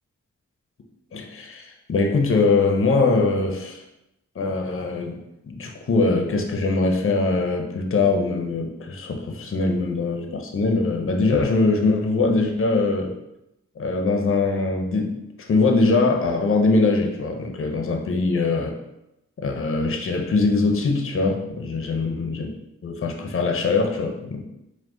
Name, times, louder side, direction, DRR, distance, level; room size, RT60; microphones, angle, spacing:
voice 1, 1.1-3.8 4.4-5.2 5.5-13.1 13.8-18.8 19.4-22.5 22.8-24.4, left 3 dB, 45° left, 2 dB, 0.5 m, -22 dB
4.8 x 2.1 x 3.6 m, 0.87 s
wide cardioid pair, 100°, 30 cm